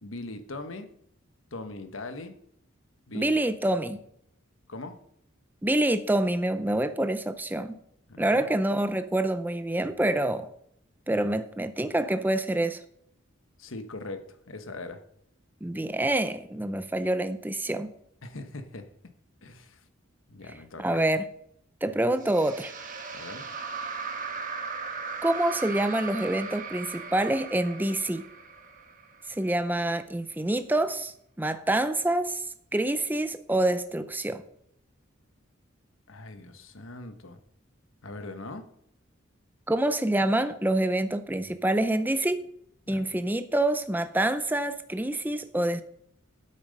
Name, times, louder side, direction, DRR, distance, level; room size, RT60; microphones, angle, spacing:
voice 1, 0.0-0.9 1.5-2.4 3.1-3.4 4.7-5.0 8.1-8.5 13.6-15.0 18.2-18.9 19.4-19.8 20.3-21.0 23.1-23.5 36.1-37.4 38.0-38.7 42.9-43.2, left 2 dB, 75° left, 8 dB, 1.2 m, -40 dB
voice 2, 3.1-4.0 5.6-7.8 8.2-10.5 11.1-12.8 15.6-17.9 20.8-21.3 21.8-22.7 25.2-28.3 29.3-34.4 39.7-42.4 42.9-45.8, right 1 dB, 10° right, 10 dB, 0.5 m, -26 dB
sound 1, 22.2-29.5, right 5 dB, 40° right, 1.4 m, -38 dB
9.6 x 8.6 x 5.3 m, 0.71 s
head